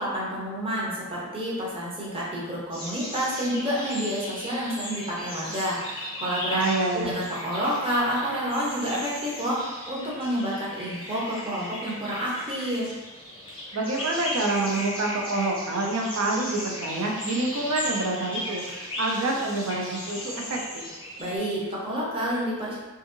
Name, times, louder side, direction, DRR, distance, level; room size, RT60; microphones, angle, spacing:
voice 1, 0.0-6.6 6.9-12.9 21.2-22.8, equal, 25° right, -6 dB, 0.6 m, -29 dB
sound 1, 2.7-21.4, left 1 dB, 25° left, 0.5 m, -37 dB
voice 2, 6.5-7.2 13.7-20.8, right 2 dB, 70° right, 0 dB, 0.5 m, -27 dB
2.7 x 2.6 x 2.5 m, 1.2 s
head